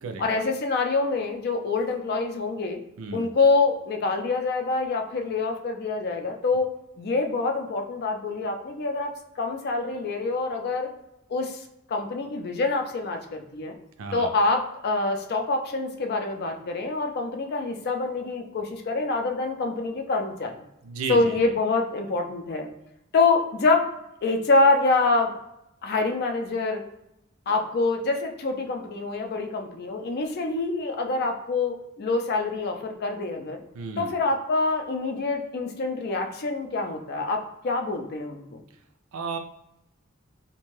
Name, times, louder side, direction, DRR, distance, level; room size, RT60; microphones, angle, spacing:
voice 1, 0.2-2.8 3.1-10.9 11.3-11.6 11.9-13.7 14.1-20.5 21.1-22.7 23.1-23.9 24.2-25.3 25.8-26.8 27.5-33.6 34.0-38.6, left 3 dB, 50° left, 4 dB, 0.4 m, -26 dB
voice 2, 14.0-14.3 20.8-21.4 33.7-34.1 39.1-39.4, right 4 dB, 75° right, 6 dB, 0.4 m, -33 dB
2.6 x 2.2 x 3.0 m, 0.85 s
head